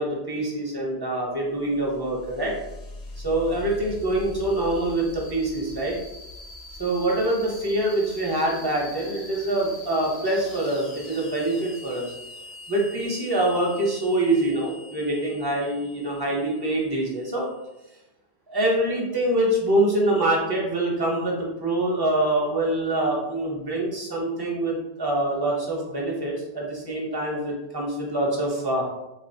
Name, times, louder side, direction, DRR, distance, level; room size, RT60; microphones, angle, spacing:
voice 1, 0.0-2.5 3.2-6.0 6.8-12.1 12.7-17.5 18.5-28.8, right 1 dB, 25° right, -3 dB, 0.7 m, -25 dB
sound 1, 1.5-17.8, left 2 dB, 80° left, 0.8 m, -43 dB
3.7 x 2.4 x 2.6 m, 0.96 s
omnidirectional pair, 1.1 m